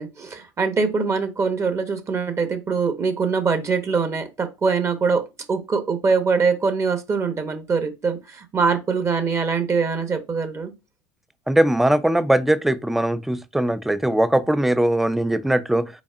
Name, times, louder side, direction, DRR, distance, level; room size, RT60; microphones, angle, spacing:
voice 1, 0.0-10.7, right 5 dB, 25° right, 0.8 m, -23 dB
voice 2, 11.5-15.9, right 1 dB, ahead, 0.3 m, -20 dB
5.0 x 4.0 x 2.4 m
supercardioid pair, 100°, 11 cm